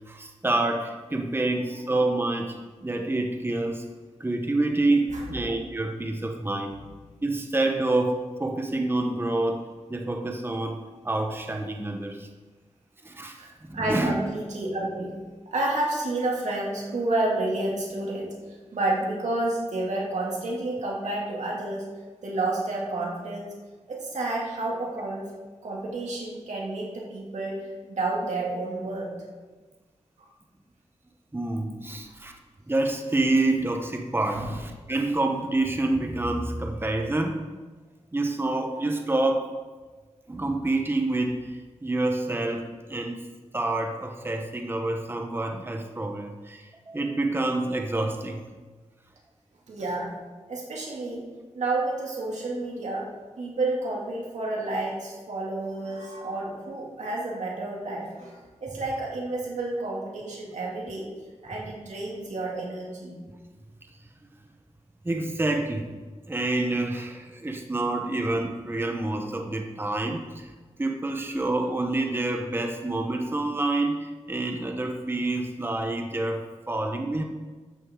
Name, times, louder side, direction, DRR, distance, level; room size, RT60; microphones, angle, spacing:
voice 1, 0.1-2.6 2.8-3.8 4.2-6.8 7.2-12.3 13.0-13.4 13.7-14.1 31.3-32.3 32.7-37.4 38.1-39.5 40.3-43.2 43.5-48.4 65.0-65.9 66.3-70.5 70.8-77.2, right 2 dB, 20° right, 3 dB, 1.0 m, -27 dB
voice 2, 13.7-15.2 15.5-18.3 18.7-21.9 22.2-23.5 23.9-25.3 25.6-29.1 30.2-30.3 34.3-34.5 49.7-50.1 50.5-51.2 51.5-53.1 53.4-61.1 61.4-63.2, right 2 dB, 85° right, -3 dB, 2.5 m, -30 dB
12.5 x 8.9 x 3.8 m, 1.3 s
wide cardioid pair, 75°, 12 cm